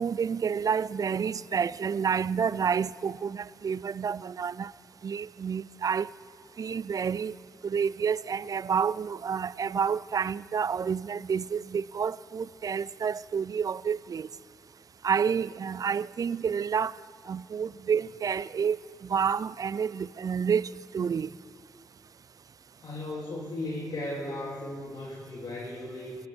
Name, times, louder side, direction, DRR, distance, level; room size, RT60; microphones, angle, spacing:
voice 1, 0.0-4.7 5.0-6.1 6.6-7.3 7.6-14.3 15.0-16.9 17.3-21.3, right 6 dB, 50° right, 0.4 m, -29 dB
voice 2, 22.8-26.1, left 1 dB, 55° left, 3.0 m, -36 dB
19.5 x 8.4 x 6.2 m
supercardioid pair, 45°, 8 cm